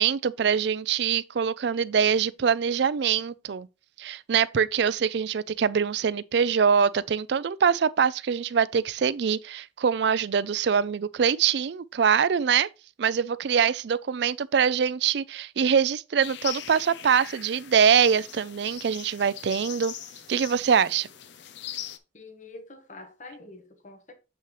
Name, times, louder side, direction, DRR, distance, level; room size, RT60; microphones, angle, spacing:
voice 1, 0.0-3.7 4.0-12.7 13.0-19.9 20.3-21.1, right 7 dB, 65° right, 0.4 m, -24 dB
sound 1, 16.2-22.0, left 10 dB, 65° left, 0.6 m, -40 dB
voice 2, 22.1-24.1, left 2 dB, 40° left, 1.1 m, -46 dB
7.4 x 5.6 x 3.1 m
head